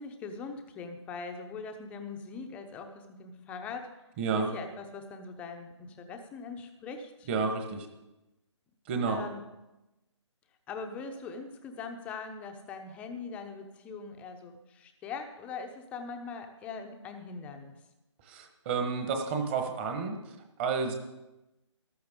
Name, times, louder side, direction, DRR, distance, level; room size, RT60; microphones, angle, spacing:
voice 1, 0.0-3.9 4.4-7.3 9.1-9.4 10.7-17.8, left 4 dB, 10° left, 5 dB, 0.7 m, -41 dB
voice 2, 4.2-4.5 7.3-7.9 8.9-9.2 18.3-20.2 20.6-20.9, right 5 dB, 20° right, 5 dB, 1.3 m, -30 dB
14.0 x 12.0 x 3.7 m, 0.99 s
hypercardioid pair, 155°, 16 cm